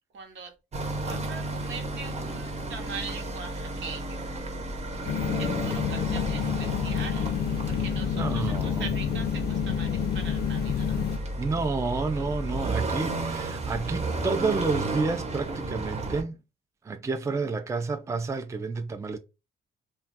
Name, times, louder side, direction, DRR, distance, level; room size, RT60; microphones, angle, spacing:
voice 1, 0.1-0.5 1.0-4.3 5.1-7.3 7.6-11.0, right 5 dB, 75° right, 0.9 m, -41 dB
sound 1, 0.7-16.2, right 2 dB, 35° right, 0.9 m, -33 dB
sound 2, 5.1-11.2, left 9 dB, 55° left, 0.4 m, -29 dB
voice 2, 8.1-8.9 11.4-16.4 16.8-19.2, right 4 dB, 15° right, 0.4 m, -30 dB
2.3 x 2.2 x 3.9 m
cardioid pair, 90°, 20 cm